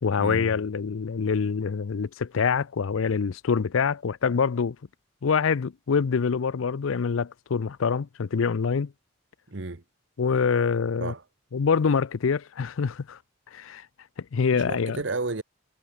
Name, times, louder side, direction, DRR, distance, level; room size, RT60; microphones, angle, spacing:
voice 1, 0.0-4.8 5.2-8.9 10.2-11.1 11.5-13.2 13.5-13.8 14.3-15.0, left 5 dB, 85° left, 0.5 m, -25 dB
voice 2, 9.5-9.8 11.0-11.2 14.5-15.4, right 3 dB, 65° right, 1.1 m, -32 dB
head